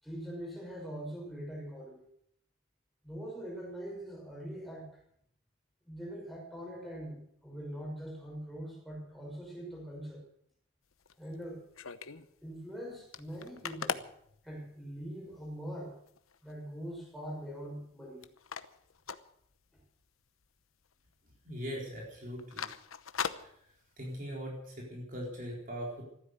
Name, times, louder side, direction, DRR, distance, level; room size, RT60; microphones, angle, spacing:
voice 1, 0.0-2.1 3.0-5.0 5.9-10.2 11.2-11.6 12.4-14.0 14.4-16.0 16.4-18.3, equal, ahead, -2 dB, 6.0 m, -42 dB
sound 1, 10.9-12.3 12.7-12.8 13.0-15.1 15.6-15.7 16.1-16.5 16.9-17.9 18.2-20.0 20.3-20.5 20.8-21.3 21.5-21.7 22.2-24.2, left 6 dB, 85° left, 0.9 m, -40 dB
voice 2, 21.4-22.7 23.4-23.5 24.0-26.0, equal, 40° right, -2 dB, 4.2 m, -40 dB
14.5 x 12.5 x 8.0 m, 0.68 s
head